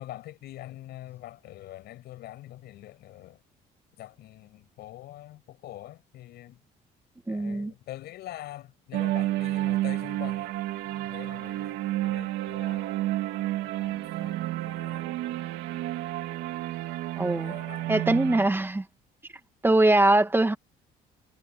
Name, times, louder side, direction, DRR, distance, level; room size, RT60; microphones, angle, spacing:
voice 1, 0.0-3.4 4.0-6.6 7.3-13.0 13.4-15.1 17.3-18.2, left 14 dB, 75° left, 6.2 m, -45 dB
voice 2, 7.3-7.7 17.2-17.5 17.9-18.8 19.6-20.5, right 2 dB, 15° right, 2.0 m, -22 dB
sound 1, 8.9-18.5, right 15 dB, 85° right, 2.7 m, -30 dB
cardioid pair, 110°, 17 cm